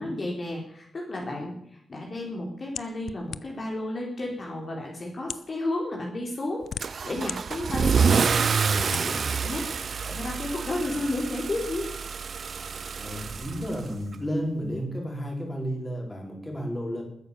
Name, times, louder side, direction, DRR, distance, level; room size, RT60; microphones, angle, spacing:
voice 1, 0.0-1.6 1.9-8.4 9.4-9.7 10.1-11.8, left 1 dB, 40° left, -1 dB, 4.3 m, -32 dB
sound 1, 2.8-3.7 4.5-4.6 5.2-5.5 6.3-7.4 7.9-8.0 8.7-9.1, left 8 dB, 90° left, 0.6 m, -37 dB
Car / Engine starting / Accelerating revving vroom, 6.8-14.1, right 6 dB, 60° right, 0.7 m, -27 dB
voice 2, 8.7-9.2 10.0-10.2 12.6-12.7 13.0-17.0, equal, 15° left, 1 dB, 5.4 m, -33 dB
20.5 x 9.7 x 7.2 m, 0.73 s
wide cardioid pair, 115°, 0 cm